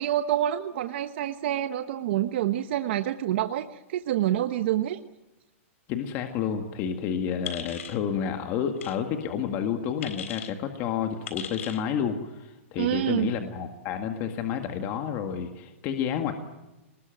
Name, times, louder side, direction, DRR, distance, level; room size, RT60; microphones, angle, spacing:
voice 1, 0.0-5.0 12.8-13.3, right 12 dB, 55° right, 8 dB, 1.1 m, -27 dB
voice 2, 5.9-16.3, left 8 dB, 30° left, 5 dB, 1.9 m, -30 dB
sound 1, 7.5-8.0 8.8-9.0 10.0-10.5 11.3-11.8, left 8 dB, 75° left, 3.8 m, -38 dB
27.0 x 20.5 x 9.2 m, 1.1 s
supercardioid pair, 165°, 7 cm